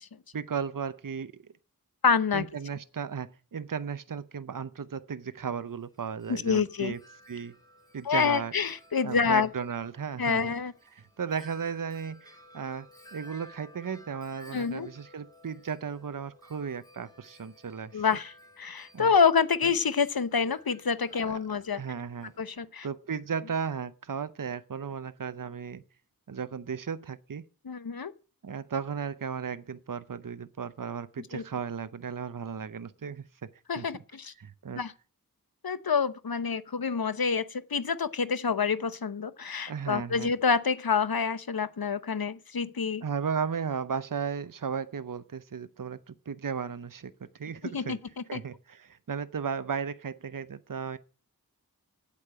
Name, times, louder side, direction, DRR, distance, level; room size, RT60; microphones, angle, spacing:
voice 1, 0.3-1.4 2.3-7.0 7.3-7.5 7.9-8.5 9.0-10.5 10.9-18.0 18.9-19.1 21.2-22.3 22.8-25.8 26.3-27.4 28.4-33.2 33.8-33.9 34.4-34.8 39.7-40.3 43.0-48.0 48.3-51.0, right 6 dB, 65° right, 0.7 m, -35 dB
voice 2, 2.0-2.4 6.3-6.9 8.0-9.5 10.2-10.7 14.5-14.9 17.9-21.8 22.4-22.9 27.6-28.1 31.3-31.4 33.7-34.3 34.7-34.9 35.6-43.0 47.7-48.0 48.3-48.4, left 6 dB, 80° left, 0.8 m, -27 dB
Wind chime, 5.7-22.5, equal, 10° left, 4.5 m, -56 dB
8.4 x 8.4 x 8.7 m
wide cardioid pair, 50°, 35 cm